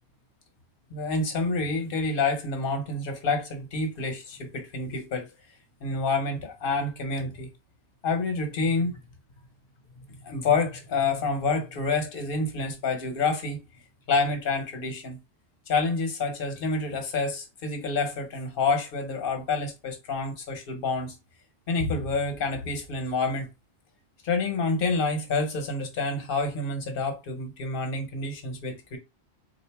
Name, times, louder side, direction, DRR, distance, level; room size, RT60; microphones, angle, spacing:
voice 1, 0.9-5.3 5.8-7.5 8.0-9.0 10.0-13.6 14.1-15.2 15.7-21.2 21.7-23.5 24.2-29.0, left 3 dB, 60° left, 1.1 m, -28 dB
3.7 x 2.5 x 3.4 m
omnidirectional pair, 1.1 m